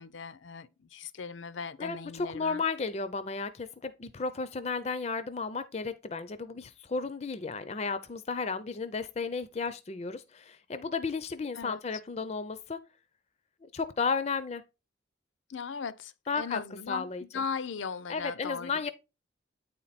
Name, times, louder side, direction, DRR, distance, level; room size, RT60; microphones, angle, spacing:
voice 1, 0.0-2.6 11.6-11.8 15.5-18.9, left 5 dB, 80° left, 0.6 m, -38 dB
voice 2, 1.8-12.8 13.7-14.6 16.3-16.6 16.9-17.4 18.1-18.9, left 4 dB, 35° left, 0.5 m, -33 dB
9.1 x 4.4 x 4.1 m
head